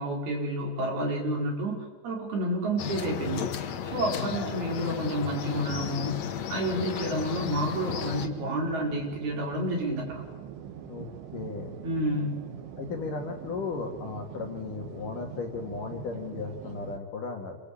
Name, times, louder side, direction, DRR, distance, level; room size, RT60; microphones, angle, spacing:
voice 1, 0.0-3.5 3.8-6.2 6.5-10.2 11.8-12.4, right 1 dB, 55° right, 0 dB, 6.8 m, -30 dB
sound 1, 2.8-8.3, left 8 dB, 70° left, 1.6 m, -34 dB
voice 2, 4.1-4.5 10.9-11.1 11.3-11.8 12.8-17.6, left 4 dB, 50° left, 2 dB, 3.2 m, -36 dB
sound 2, 8.0-17.0, right 9 dB, 75° right, 4.0 m, -43 dB
27.5 x 22.5 x 8.7 m, 1.2 s
omnidirectional pair, 5.5 m